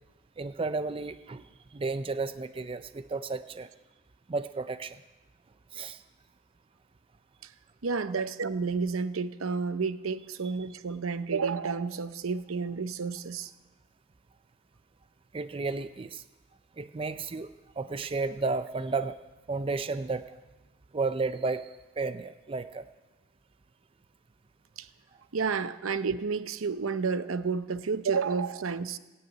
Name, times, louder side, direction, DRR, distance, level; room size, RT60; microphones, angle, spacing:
voice 1, 0.4-1.5 1.7-3.7 4.3-5.0 5.7-6.0 8.1-8.2 15.3-16.2 16.8-19.2 19.5-20.3 20.9-21.7 22.0-22.8, right 3 dB, 25° right, 11 dB, 0.4 m, -32 dB
voice 2, 7.8-13.5 25.3-29.0, right 5 dB, 85° right, 12 dB, 0.7 m, -30 dB
16.5 x 9.1 x 9.2 m, 1.2 s
head